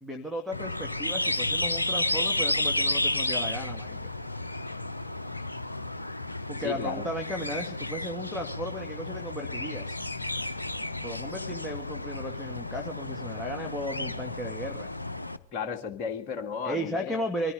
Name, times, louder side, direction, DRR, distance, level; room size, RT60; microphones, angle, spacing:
voice 1, 0.0-4.1 6.5-10.0 11.0-14.9 16.6-17.5, equal, ahead, 0 dB, 1.9 m, -35 dB
sound 1, 0.5-15.4, left 2 dB, 85° left, 0.7 m, -32 dB
voice 2, 6.6-7.0 15.5-17.2, left 6 dB, 35° left, 3 dB, 2.0 m, -34 dB
24.0 x 15.0 x 3.9 m, 0.41 s
figure-of-eight pair, 90°, 0 cm